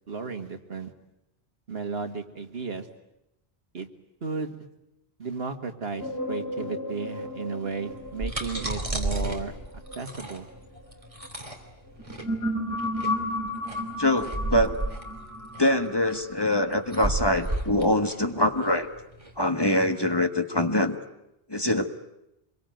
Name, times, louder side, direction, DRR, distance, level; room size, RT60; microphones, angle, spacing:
voice 1, 0.1-0.9 1.7-2.9 3.7-3.9 4.2-4.6 5.2-9.6 10.0-10.5, right 4 dB, 75° right, 7 dB, 2.0 m, -34 dB
sound 1, 6.0-11.3 11.9-16.8, left 1 dB, 85° left, 4.2 m, -34 dB
sound 2, 7.9-19.3, right 2 dB, 35° right, 3.2 m, -33 dB
voice 2, 14.0-14.8 15.6-18.9 19.4-21.0 21.5-21.9, left 1 dB, 25° left, 7 dB, 1.4 m, -24 dB
26.0 x 22.5 x 9.2 m, 0.86 s
omnidirectional pair, 1.0 m